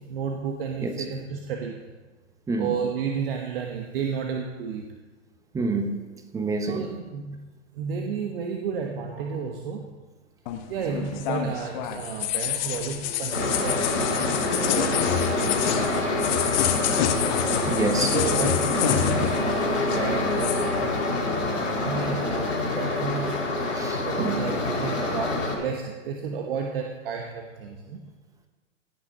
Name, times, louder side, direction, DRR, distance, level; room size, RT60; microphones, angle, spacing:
voice 1, 0.0-1.9 2.6-5.0 6.7-7.5 7.7-10.0 10.7-16.4 16.9-17.1 17.9-21.0 21.4-23.6 24.0-28.1, right 6 dB, 50° right, 1.2 m, -32 dB
voice 2, 5.5-6.0 6.3-6.8 17.7-18.2 23.7-24.3, right 3 dB, 10° right, 1.0 m, -27 dB
sound 1, 10.5-19.6 19.8-20.7, left 11 dB, 40° left, 1.1 m, -28 dB
sound 2, 13.3-25.5, left 2 dB, 85° left, 4.2 m, -26 dB
17.0 x 6.1 x 5.7 m
hypercardioid pair, 120°, 37 cm